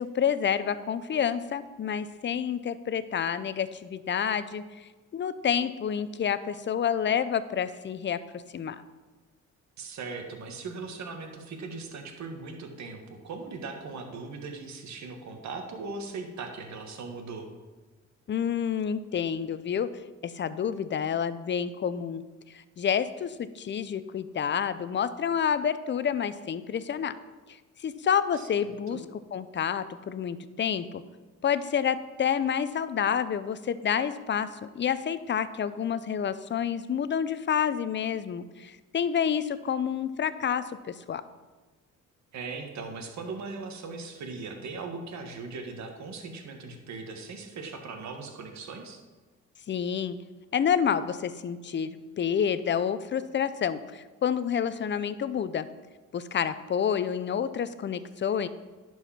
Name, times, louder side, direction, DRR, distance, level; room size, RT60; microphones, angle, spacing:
voice 1, 0.0-8.8 18.3-19.9 20.2-22.2 22.5-27.1 27.8-29.0 29.3-31.0 31.4-41.2 49.7-50.2 50.5-55.7 56.1-58.5, left 8 dB, 40° left, 14 dB, 0.6 m, -29 dB
voice 2, 9.8-17.5 28.3-29.0 42.3-49.0, right 4 dB, 65° right, 4 dB, 1.6 m, -39 dB
10.5 x 4.8 x 5.8 m, 1.3 s
cardioid pair, 90°, 30 cm